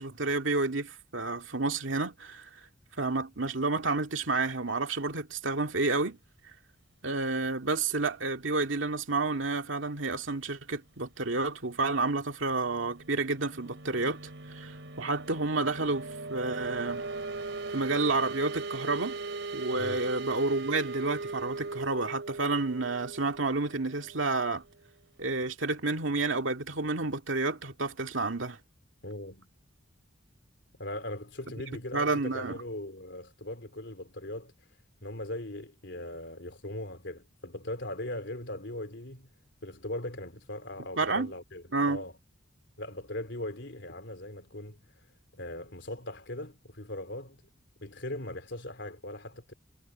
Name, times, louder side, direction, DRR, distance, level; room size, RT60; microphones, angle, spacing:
voice 1, 0.0-2.5 3.0-6.2 7.0-14.2 14.5-17.0 17.7-19.2 19.5-24.6 25.2-28.6 31.9-32.6 41.0-41.3 41.7-42.0, right 3 dB, 90° right, 2.1 m, -30 dB
sound 1, 12.3-24.8, right 3 dB, 70° right, 3.9 m, -39 dB
voice 2, 19.8-20.2 29.0-29.5 30.8-34.5 35.0-39.3 39.6-42.1 42.8-44.8 45.3-47.4 47.8-49.5, left 1 dB, 65° left, 4.0 m, -39 dB
head